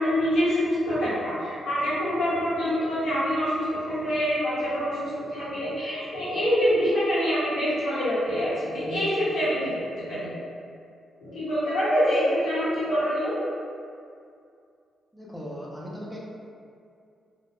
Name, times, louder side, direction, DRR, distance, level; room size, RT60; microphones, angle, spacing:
voice 1, 0.0-10.3 11.2-13.3, equal, 75° left, -12 dB, 1.1 m, -25 dB
voice 2, 15.1-16.2, equal, 5° left, -4 dB, 0.4 m, -38 dB
2.2 x 2.1 x 2.8 m, 2.4 s
cardioid pair, 140°, 0 cm